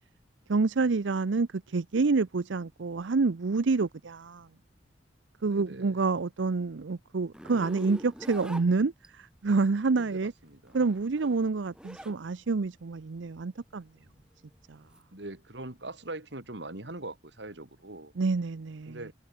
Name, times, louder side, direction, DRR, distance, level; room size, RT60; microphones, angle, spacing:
voice 1, 0.5-4.5 5.4-10.3 10.7-13.8 14.7-14.8 18.2-19.0, right 4 dB, 85° right, 0.6 m, -28 dB
voice 2, 5.4-6.0 10.0-10.8 15.1-18.1 18.9-19.1, right 2 dB, 70° right, 2.9 m, -42 dB
Zipper (clothing), 7.3-9.4 10.5-12.2 12.6-15.0, equal, 5° right, 1.2 m, -45 dB
head